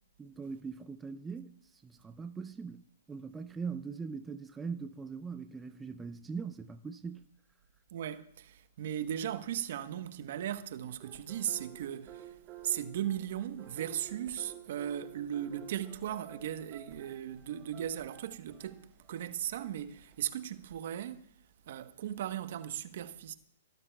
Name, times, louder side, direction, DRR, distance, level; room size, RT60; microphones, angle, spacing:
voice 1, 0.2-2.8 3.1-7.2, right 5 dB, 10° right, 0.5 m, -41 dB
voice 2, 7.9-12.3 12.6-21.2 21.7-23.3, right 10 dB, 55° right, 1.1 m, -37 dB
sound 1, 11.0-20.8, right 10 dB, 25° right, 5.8 m, -52 dB
28.5 x 13.5 x 2.3 m
hypercardioid pair, 125°, 0 cm